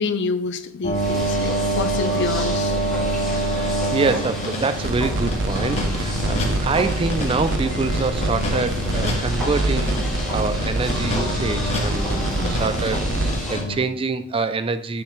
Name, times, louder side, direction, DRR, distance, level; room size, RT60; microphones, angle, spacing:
voice 1, 0.0-2.8 12.4-12.7, left 4 dB, 60° left, 11 dB, 0.6 m, -27 dB
sound 1, 0.8-13.8, right 1 dB, 30° left, 1.6 m, -27 dB
sound 2, 0.9-13.6, left 1 dB, 5° left, 3.1 m, -32 dB
voice 2, 3.4-10.0 10.3-15.0, right 4 dB, 25° right, 12 dB, 0.4 m, -26 dB
sound 3, 4.8-13.3, right 1 dB, 60° right, 0.7 m, -26 dB
8.7 x 6.7 x 3.2 m, 0.68 s
head